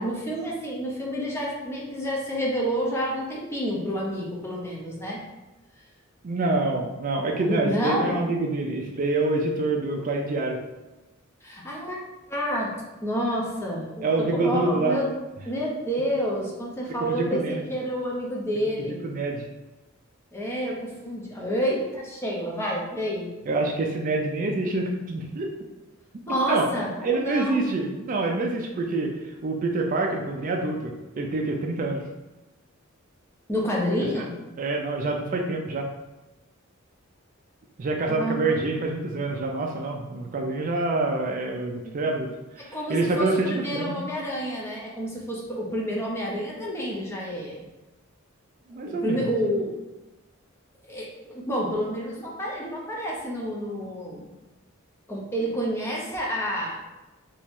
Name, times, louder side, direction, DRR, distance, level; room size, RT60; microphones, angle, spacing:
voice 1, 0.0-5.2 7.3-8.2 11.4-12.0 12.3-12.8 13.0-14.0 14.3-15.1 15.5-17.4 17.7-19.0 20.3-23.3 26.3-27.7 33.5-34.4 38.1-38.6 41.8-41.9 42.7-47.6 48.8-49.8 50.9-54.3 55.1-56.8, equal, 15° left, -3 dB, 0.7 m, -29 dB
voice 2, 6.2-10.6 14.0-15.0 17.0-17.6 18.9-19.5 23.5-25.5 26.5-26.7 27.0-29.2 29.4-32.0 34.0-34.3 34.6-35.9 37.8-43.9 48.7-49.3, right 2 dB, 40° right, 1 dB, 0.4 m, -26 dB
2.9 x 2.7 x 3.5 m, 1.1 s
head